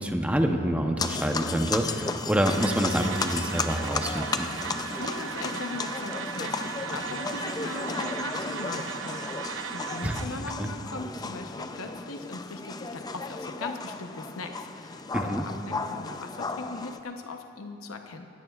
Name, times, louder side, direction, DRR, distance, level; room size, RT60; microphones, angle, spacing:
voice 1, 0.0-4.5 10.0-10.1 10.6-10.7 15.1-15.4, equal, 5° right, 3 dB, 0.8 m, -27 dB
sound 1, 1.0-17.0, left 3 dB, 20° left, 0.4 m, -34 dB
sound 2, 2.5-10.3, right 7 dB, 75° right, 0.6 m, -37 dB
voice 2, 5.0-18.3, left 3 dB, 90° left, 5 dB, 0.8 m, -39 dB
21.5 x 17.0 x 2.4 m, 2.7 s
head